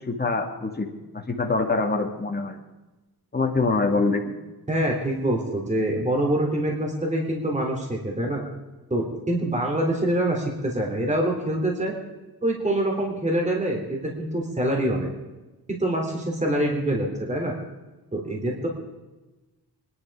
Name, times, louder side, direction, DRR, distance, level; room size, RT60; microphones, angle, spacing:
voice 1, 0.1-2.6 3.3-4.2, left 3 dB, 25° left, 3 dB, 2.3 m, -25 dB
voice 2, 4.7-8.4 8.9-11.9 12.4-15.1 15.7-17.5 18.1-18.7, right 1 dB, 20° right, 0 dB, 3.5 m, -25 dB
24.0 x 11.0 x 4.9 m, 1.1 s
wide cardioid pair, 110°, 38 cm